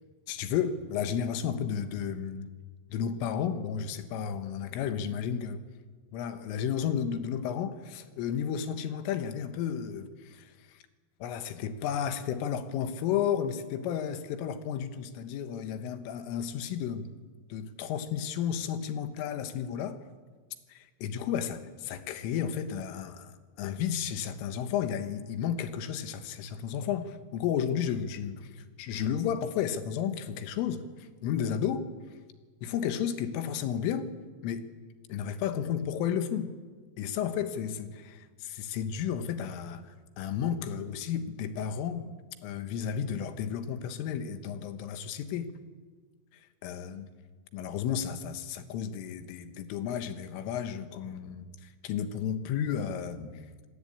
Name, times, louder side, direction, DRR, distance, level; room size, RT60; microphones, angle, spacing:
voice 1, 0.3-2.5 2.9-5.6 6.1-10.8 11.2-17.1 17.5-20.0 20.7-31.9 32.6-34.1 34.4-34.7 35.1-36.5 37.0-42.1 42.4-45.5 46.6-47.1 47.5-53.5, left 8 dB, 75° left, 10 dB, 3.7 m, -33 dB
27.0 x 19.0 x 8.7 m, 1.5 s
omnidirectional pair, 6.0 m